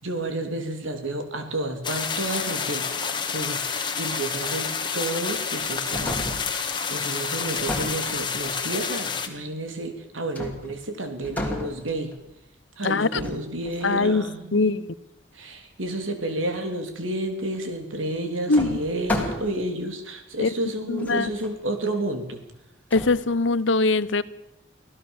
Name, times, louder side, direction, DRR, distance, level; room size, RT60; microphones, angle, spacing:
voice 1, 0.0-3.0 3.3-12.1 12.8-14.7 15.3-22.4, right 1 dB, 90° right, 6 dB, 3.3 m, -31 dB
sound 1, 1.8-9.3, left 6 dB, 25° left, 1.7 m, -29 dB
sound 2, 5.6-6.6 7.5-8.6 10.3-10.9 11.2-12.3 13.1-14.0 17.5-17.6 18.5-19.7 20.4-20.5 21.0-21.5 22.9-23.2, left 1 dB, 10° left, 2.9 m, -33 dB
voice 2, 12.8-13.2 13.8-14.2 14.5-14.9 18.5-18.8 20.4-20.5 20.9-21.3 22.9-24.2, left 3 dB, 75° left, 16 dB, 0.9 m, -22 dB
25.0 x 15.5 x 7.2 m, 0.87 s
head